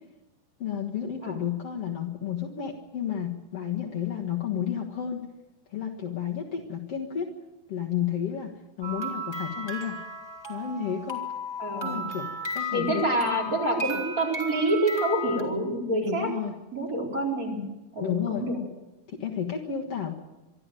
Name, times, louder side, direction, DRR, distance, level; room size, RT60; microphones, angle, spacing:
voice 1, 0.6-5.2 5.7-7.3 7.7-8.5 8.8-10.0 10.5-11.2 11.8-12.3 12.5-13.1 16.0-16.5 18.0-18.4 19.1-20.2, left 9 dB, 55° left, 0 dB, 2.5 m, -31 dB
sound 1, 8.8-15.4, left 1 dB, 10° left, 2.6 m, -34 dB
voice 2, 11.6-12.0 12.7-16.3 16.7-17.6 17.9-18.6, right 1 dB, 25° right, 0 dB, 4.9 m, -27 dB
25.0 x 13.0 x 9.2 m, 1.1 s
omnidirectional pair, 3.6 m